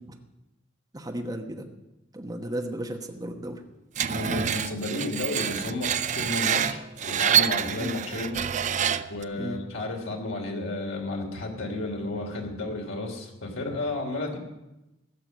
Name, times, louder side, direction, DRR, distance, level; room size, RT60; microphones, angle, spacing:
voice 1, 0.9-1.6 2.1-3.6 7.7-8.0 9.3-9.6, right 1 dB, 20° right, 2 dB, 1.1 m, -34 dB
voice 2, 4.0-8.4 9.1-14.4, left 2 dB, 80° left, 1 dB, 3.1 m, -32 dB
Screech, 4.0-9.2, right 8 dB, 35° right, 0.4 m, -27 dB
16.0 x 6.9 x 9.1 m, 0.99 s
head